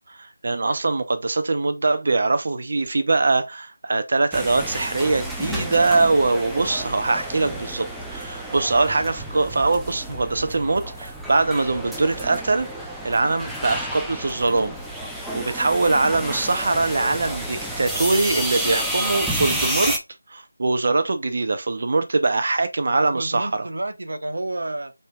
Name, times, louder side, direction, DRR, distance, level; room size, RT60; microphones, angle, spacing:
voice 1, 0.1-12.7 13.0-14.7 15.3-19.9 20.3-23.7, right 3 dB, 55° right, 0.7 m, -22 dB
sound 1, 4.3-20.0, right 1 dB, ahead, 0.6 m, -30 dB
voice 2, 22.9-24.9, right 2 dB, 70° right, 1.1 m, -30 dB
5.3 x 3.5 x 2.3 m
figure-of-eight pair, 165°, 0 cm